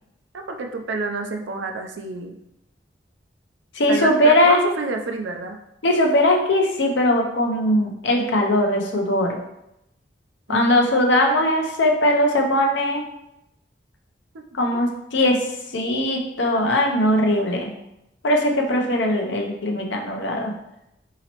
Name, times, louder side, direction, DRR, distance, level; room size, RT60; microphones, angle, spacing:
voice 1, 0.3-2.4 3.9-5.6 10.5-11.1 14.3-14.4, right 3 dB, 90° right, 4 dB, 0.5 m, -29 dB
voice 2, 3.7-4.6 5.8-9.4 10.5-13.0 14.5-15.4 15.7-17.7 18.2-20.5, left 1 dB, 85° left, 2 dB, 0.7 m, -20 dB
4.0 x 2.9 x 2.9 m, 0.84 s
head